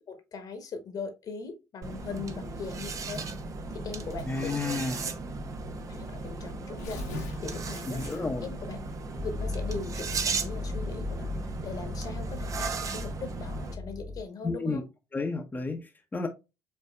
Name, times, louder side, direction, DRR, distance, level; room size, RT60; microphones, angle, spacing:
voice 1, 0.1-3.3 3.7-5.1 5.9-8.1 8.4-8.8 9.2-14.8, left 5 dB, 50° left, 1.3 m, -40 dB
sound 1, 1.8-13.7, right 3 dB, 40° right, 0.8 m, -36 dB
Tearing, 4.1-4.5 5.4-5.5 5.8-5.9 6.5-8.5, left 1 dB, 80° left, 1.4 m, -40 dB
voice 2, 4.3-5.0 7.9-8.4 14.4-14.8 15.1-16.3, left 3 dB, 20° left, 0.9 m, -31 dB
sound 2, 9.1-14.2, left 2 dB, 20° right, 1.5 m, -37 dB
5.4 x 3.4 x 2.3 m
hypercardioid pair, 55°, 8 cm